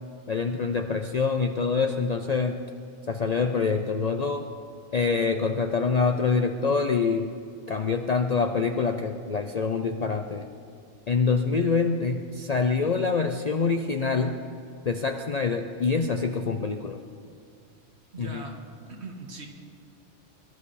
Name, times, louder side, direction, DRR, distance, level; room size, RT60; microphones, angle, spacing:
voice 1, 0.3-2.6 3.1-4.5 4.9-7.3 7.7-10.5 11.1-14.4 14.8-17.0 18.2-18.4, left 4 dB, 45° left, 5 dB, 0.6 m, -25 dB
voice 2, 18.1-18.6 18.9-19.5, right 3 dB, 65° right, 2 dB, 2.0 m, -40 dB
23.5 x 12.0 x 4.2 m, 2.4 s
omnidirectional pair, 1.2 m